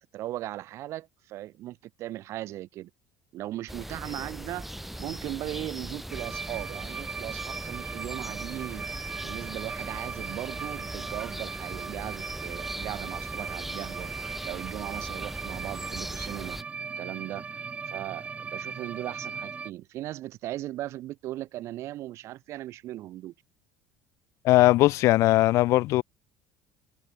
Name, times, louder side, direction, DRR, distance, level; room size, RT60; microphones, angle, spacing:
voice 1, 0.1-2.9 3.3-4.7 5.0-14.1 14.4-16.6 17.0-23.3, right 15 dB, 60° right, 1.5 m, -38 dB
sound 1, 3.7-16.6, right 1 dB, 5° right, 2.5 m, -39 dB
sound 2, 6.1-19.7, right 5 dB, 25° right, 0.6 m, -38 dB
voice 2, 24.4-26.0, left 17 dB, 60° left, 0.5 m, -19 dB
cardioid pair, 115°, 6 cm